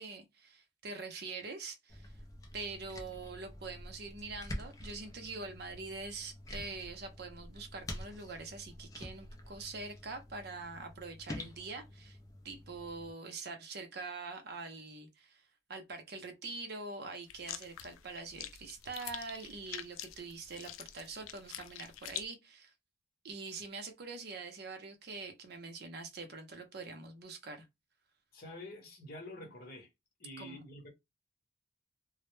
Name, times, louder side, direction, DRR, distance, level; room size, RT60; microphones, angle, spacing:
voice 1, 0.0-2.1 2.5-12.2 12.4-22.7 23.2-27.6 30.4-30.6, right 3 dB, 55° right, 0.5 m, -44 dB
sound 1, 1.9-13.1, left 1 dB, 15° left, 0.4 m, -48 dB
sound 2, 17.3-22.2, left 11 dB, 90° left, 0.3 m, -45 dB
voice 2, 28.3-29.9 30.2-30.9, left 1 dB, 50° left, 0.8 m, -47 dB
2.0 x 2.0 x 3.0 m
head